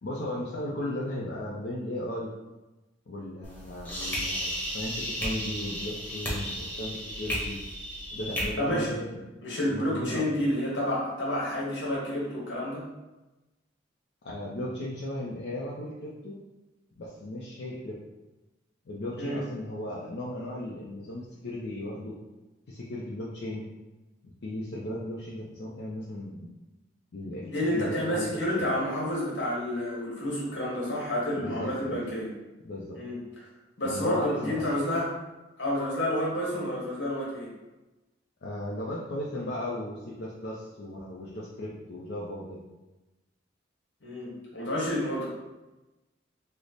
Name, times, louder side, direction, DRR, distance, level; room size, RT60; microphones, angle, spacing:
voice 1, 0.0-2.3 3.1-7.6 8.1-9.2 9.7-10.2 14.2-16.4 17.0-18.0 18.9-22.2 22.7-23.6 24.4-26.5 27.1-28.7 31.4-32.0 32.6-33.0 33.8-34.7 38.4-42.6, left 1 dB, 60° left, -5 dB, 0.5 m, -36 dB
sound 1, 3.4-8.4, equal, 10° left, 0.9 m, -34 dB
voice 2, 8.6-8.9 9.4-12.8 19.2-19.4 27.4-32.3 32.9-33.2 33.8-35.1 35.6-37.5 44.0-45.3, left 1 dB, 80° left, -5 dB, 1.3 m, -29 dB
3.2 x 2.0 x 3.9 m, 1.1 s
head